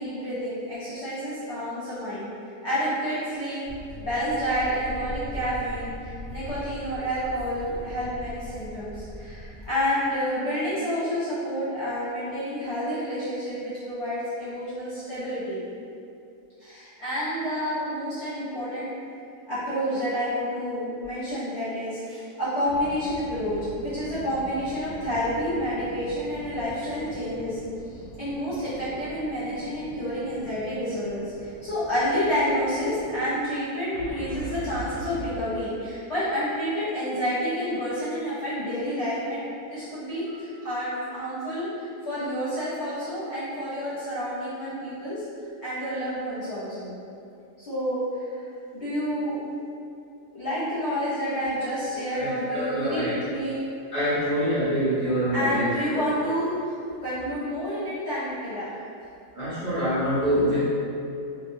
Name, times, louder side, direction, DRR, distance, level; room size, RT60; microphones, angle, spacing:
voice 1, 0.0-3.6 4.0-15.7 16.6-18.9 19.5-27.6 27.9-45.2 45.6-47.0 47.6-48.4 48.7-49.4 50.3-53.6 55.3-56.7 57.0-58.7, equal, 60° left, -12 dB, 0.7 m, -29 dB
sound 1, 3.6-9.7, equal, 20° left, 0.5 m, -39 dB
sound 2, 22.7-33.3 33.9-35.5, right 2 dB, 85° left, 1.1 m, -42 dB
voice 2, 52.1-53.1 53.9-55.7 55.9-56.0 59.3-60.6, equal, 45° right, -14 dB, 0.7 m, -25 dB
2.9 x 2.0 x 2.6 m, 2.6 s
omnidirectional pair, 1.7 m